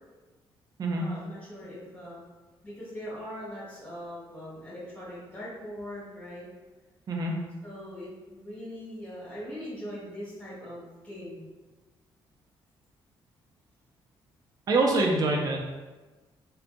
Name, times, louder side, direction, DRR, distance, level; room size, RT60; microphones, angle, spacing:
voice 1, 0.9-2.2 2.6-6.5 7.6-11.5, equal, 15° left, -9 dB, 1.5 m, -41 dB
voice 2, 14.7-15.6, right 2 dB, 45° right, 0 dB, 0.4 m, -25 dB
2.5 x 2.2 x 2.5 m, 1.2 s
cardioid pair, 95°, 9 cm